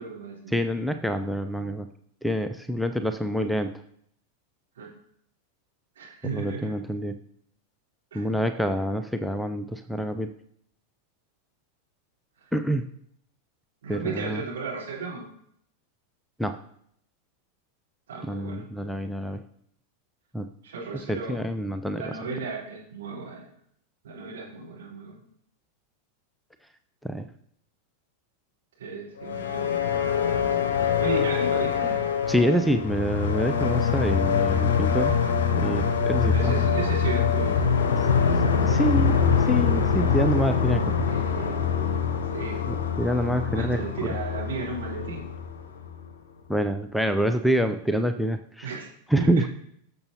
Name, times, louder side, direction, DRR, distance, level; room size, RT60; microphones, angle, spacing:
voice 1, 0.0-0.6 4.8-4.9 6.0-6.7 8.1-8.3 13.8-15.3 18.1-18.7 20.6-21.4 22.0-23.5 24.0-25.2 28.8-29.8 30.8-32.1 35.6-35.9 36.3-37.7 41.1-41.8 42.3-42.7 43.4-45.3 48.6-48.9 49.2-49.5, right 4 dB, 60° right, -5 dB, 3.6 m, -34 dB
voice 2, 0.5-1.9 2.2-3.7 6.2-7.2 8.1-10.3 12.5-12.9 13.9-14.4 16.4-16.6 18.2-19.4 20.3-20.5 21.1-22.0 27.0-27.3 32.3-35.2 35.6-36.7 38.3-41.1 42.7-43.9 46.5-48.7 49.1-49.5, equal, ahead, 9 dB, 0.4 m, -26 dB
sound 1, 29.2-46.1, left 6 dB, 60° left, 0.8 m, -24 dB
12.0 x 6.8 x 2.8 m, 0.68 s
figure-of-eight pair, 90°, 0 cm